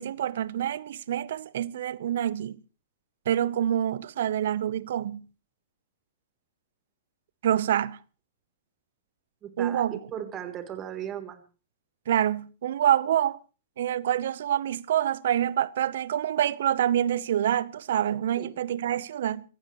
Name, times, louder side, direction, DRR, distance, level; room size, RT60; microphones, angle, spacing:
voice 1, 0.0-2.6 3.3-5.2 7.4-8.0 9.6-10.0 12.1-13.4 13.8-19.4, right 10 dB, 65° right, 0.8 m, -26 dB
voice 2, 9.4-11.4 18.4-18.5, right 10 dB, 30° right, 3.3 m, -37 dB
26.0 x 14.5 x 3.1 m
hypercardioid pair, 110°, 0 cm